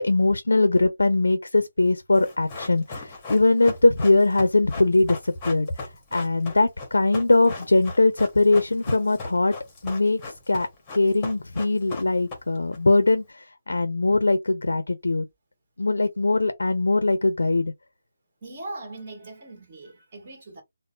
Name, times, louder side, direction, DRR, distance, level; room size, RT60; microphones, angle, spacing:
voice 1, 0.0-5.7 6.1-9.5 9.8-10.2 10.5-10.7 10.9-15.3 15.8-17.7, left 2 dB, 85° left, 0.4 m, -21 dB
Run, 2.1-12.8 13.0-13.1, left 3 dB, 15° left, 0.9 m, -37 dB
voice 2, 18.4-20.6, right 2 dB, 30° right, 1.4 m, -40 dB
3.6 x 2.0 x 2.3 m
figure-of-eight pair, 165°, 0 cm